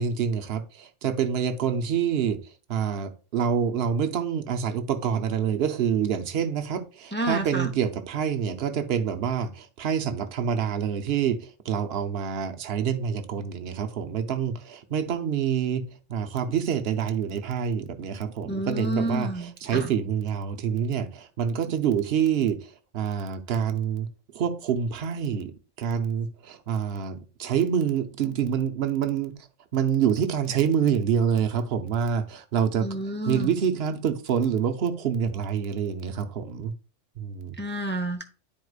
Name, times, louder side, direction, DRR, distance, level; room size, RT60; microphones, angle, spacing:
voice 1, 0.0-2.4 2.7-11.4 11.7-24.1 24.3-25.5 25.8-29.3 29.7-32.9 33.3-36.7 37.2-37.5, right 8 dB, 60° right, 0.9 m, -26 dB
voice 2, 7.1-7.7 18.4-19.9 32.8-33.6 37.6-38.2, right 1 dB, 10° left, 0.8 m, -29 dB
10.5 x 4.7 x 2.4 m
omnidirectional pair, 1.2 m